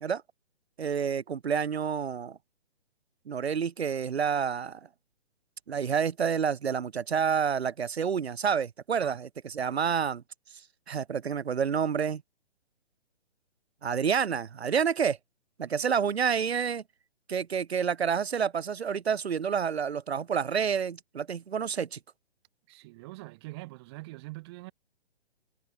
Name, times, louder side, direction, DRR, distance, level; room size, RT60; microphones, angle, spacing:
voice 1, 0.8-2.4 3.3-4.8 5.7-10.2 10.9-12.2 13.8-15.2 15.6-16.8 17.3-22.0, right 7 dB, 70° right, 0.6 m, -29 dB
voice 2, 22.7-24.7, right 22 dB, 25° right, 1.8 m, -44 dB
figure-of-eight pair, 135°, 33 cm